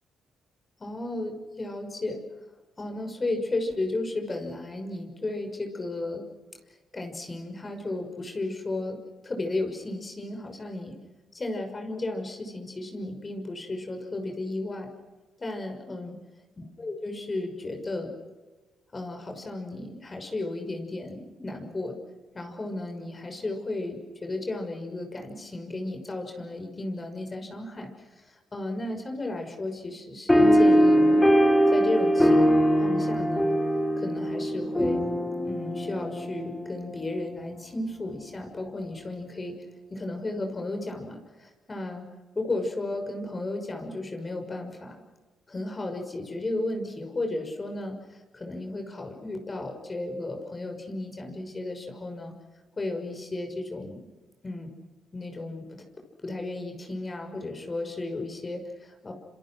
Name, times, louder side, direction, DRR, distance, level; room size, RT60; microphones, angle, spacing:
voice 1, 0.8-2.2 2.8-6.3 6.9-11.0 11.3-14.9 15.4-16.2 16.8-18.1 18.9-22.0 22.3-31.3 31.7-33.5 34.0-35.1 35.5-39.6 39.9-42.1 42.3-45.0 45.5-52.3 52.8-54.1 54.4-54.7 55.1-55.8 56.2-59.1, left 2 dB, 25° left, 4 dB, 6.0 m, -34 dB
sound 1, 30.3-37.2, equal, 10° left, 4.8 m, -22 dB
27.5 x 27.5 x 6.3 m, 1.2 s
cardioid pair, 90°, 0 cm